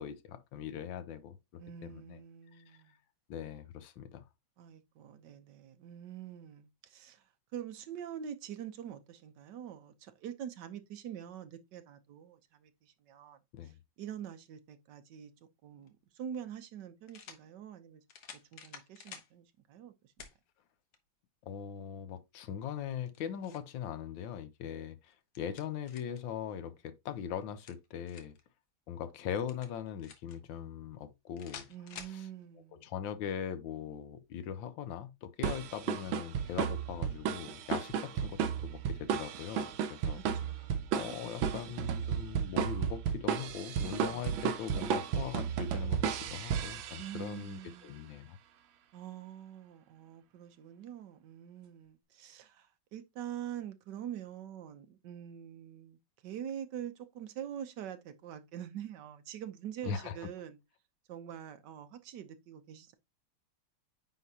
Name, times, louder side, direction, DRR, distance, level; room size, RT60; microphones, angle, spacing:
voice 1, 0.0-2.2 2.6-2.7 3.3-4.2 13.5-13.7 21.5-28.3 28.9-31.7 32.1-32.3 32.7-40.2 40.9-48.4 59.8-60.2, left 8 dB, 80° left, 1.4 m, -40 dB
voice 2, 1.6-2.9 4.6-7.2 7.5-13.4 13.6-13.7 14.0-15.3 15.6-18.0 18.3-20.3 31.7-32.9 40.2-41.8 44.0-44.4 47.0-48.1 48.9-60.6 61.1-62.9, right 9 dB, 65° right, 1.3 m, -45 dB
sound 1, 15.8-15.9 17.1-17.4 18.1-19.3 20.2-20.4 20.9-21.0 22.9-23.7 25.0-26.2 27.4-28.4 29.5-30.4 31.4-32.2, left 6 dB, 60° left, 1.4 m, -50 dB
sound 2, 35.4-47.4, right 8 dB, 85° right, 1.6 m, -34 dB
9.3 x 3.8 x 2.8 m
omnidirectional pair, 2.2 m